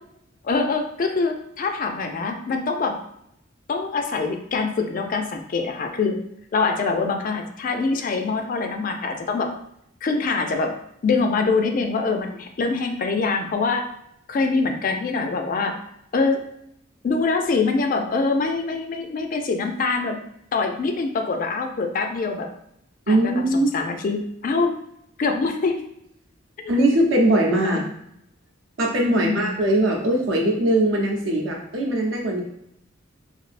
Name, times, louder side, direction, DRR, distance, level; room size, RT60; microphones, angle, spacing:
voice 1, 0.4-3.0 3.7-6.2 6.5-9.5 10.0-10.7 11.0-13.9 14.3-15.8 16.1-16.4 17.0-20.2 20.5-22.5 23.1-23.3 23.7-24.7 25.2-25.8 26.6-26.7 27.6-27.8 29.0-29.6, left 4 dB, 45° left, 5 dB, 0.3 m, -24 dB
voice 2, 23.1-23.8 26.7-27.8 28.8-32.4, right 1 dB, 75° right, 0 dB, 0.7 m, -20 dB
3.2 x 2.6 x 2.4 m, 0.76 s
head